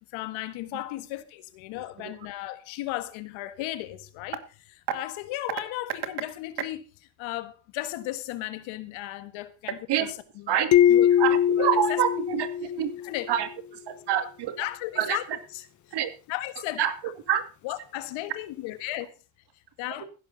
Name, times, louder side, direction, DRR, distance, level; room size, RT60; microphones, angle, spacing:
voice 1, 0.0-4.4 4.9-6.8 7.2-11.2 11.6-12.0 13.0-13.3 14.6-15.2 15.5-15.7 16.3-16.8 17.6-19.1 19.8-20.0, left 16 dB, 90° left, 1.7 m, -35 dB
sound 1, 10.7-13.3, left 10 dB, 40° left, 0.9 m, -22 dB
voice 2, 11.2-12.9 13.3-13.5 13.9-14.6 15.0-15.2 15.9-16.1 16.8-16.9 17.3-17.4, right 10 dB, 60° right, 2.4 m, -26 dB
15.5 x 12.0 x 4.1 m
cardioid pair, 130°, 46 cm